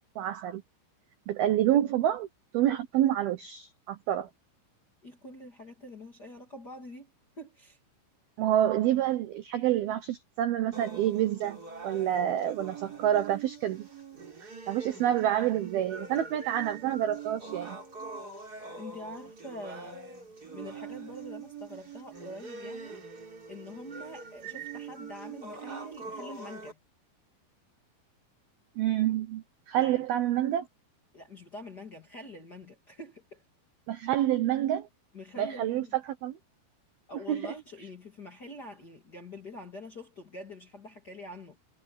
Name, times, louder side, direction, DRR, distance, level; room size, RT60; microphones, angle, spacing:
voice 1, 0.2-0.6 1.3-2.3 2.5-4.3 8.4-13.9 14.4-17.8 28.8-30.6 33.9-34.9 35.4-36.4 37.3-37.5, right 12 dB, 80° right, 2.2 m, -28 dB
voice 2, 5.0-7.1 7.4-7.8 18.5-20.0 20.5-26.8 29.7-30.0 31.1-33.4 35.1-35.9 37.1-41.6, left 1 dB, 30° left, 1.8 m, -45 dB
sound 1, 10.7-26.7, right 5 dB, 20° right, 3.4 m, -43 dB
omnidirectional pair, 6.0 m